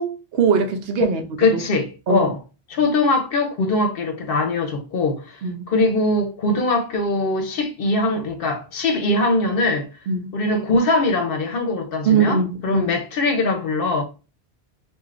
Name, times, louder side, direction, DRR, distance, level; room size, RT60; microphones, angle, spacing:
voice 1, 0.0-1.2 1.5-1.6 2.1-2.3 5.4-5.7 10.1-10.3 12.0-12.9, right 6 dB, 75° right, 0.8 m, -21 dB
voice 2, 1.4-2.4 2.7-5.4 5.7-9.9 10.3-14.0, left 2 dB, 65° left, 0.8 m, -21 dB
3.3 x 2.4 x 2.4 m
omnidirectional pair, 1.1 m